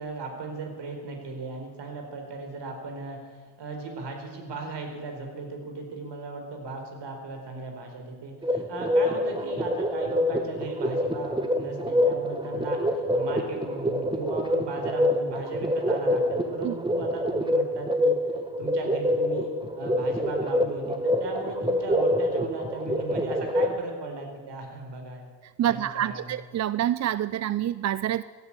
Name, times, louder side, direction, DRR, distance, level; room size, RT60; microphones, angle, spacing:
voice 1, 0.0-3.2 3.6-18.2 18.6-25.3 25.6-26.3, right 3 dB, 60° right, 3 dB, 4.5 m, -37 dB
sound 1, 8.4-23.8, left 1 dB, 10° right, 1.6 m, -26 dB
voice 2, 25.6-28.2, right 11 dB, 40° right, 16 dB, 0.4 m, -27 dB
15.5 x 10.0 x 8.8 m, 1.5 s
supercardioid pair, 80°, 47 cm